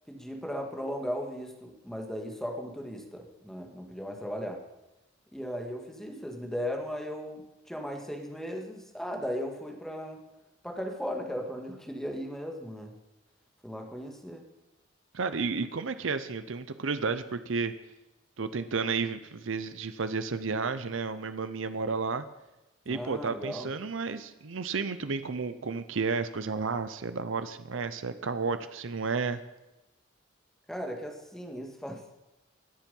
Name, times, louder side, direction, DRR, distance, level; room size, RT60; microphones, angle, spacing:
voice 1, 0.1-4.6 5.3-10.2 10.6-12.9 13.6-14.4 22.8-23.7 30.7-32.0, equal, ahead, 2 dB, 1.7 m, -37 dB
voice 2, 15.1-17.7 18.4-22.2 22.9-29.4, right 4 dB, 80° right, 11 dB, 0.7 m, -32 dB
21.5 x 7.4 x 5.4 m, 1.0 s
head